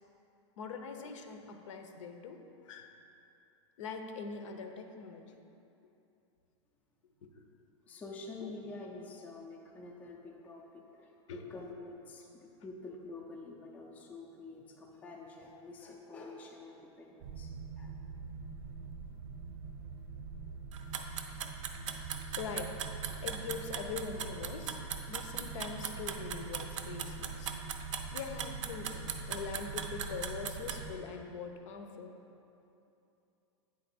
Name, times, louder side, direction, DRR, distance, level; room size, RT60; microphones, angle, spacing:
voice 1, 0.6-2.9 3.8-5.4 7.2-7.4 8.4-8.6 11.3-11.4 22.4-27.6 28.1-32.1, left 5 dB, 75° left, 6 dB, 0.7 m, -43 dB
voice 2, 7.9-17.5 17.8-18.0 19.7-19.9, left 3 dB, 10° left, -1 dB, 0.4 m, -48 dB
sound 1, 17.2-31.0, right 4 dB, 40° right, 0.5 m, -44 dB
sound 2, 20.7-30.8, right 8 dB, 90° right, 0.6 m, -38 dB
8.7 x 3.8 x 4.2 m, 2.8 s
supercardioid pair, 165°, 16 cm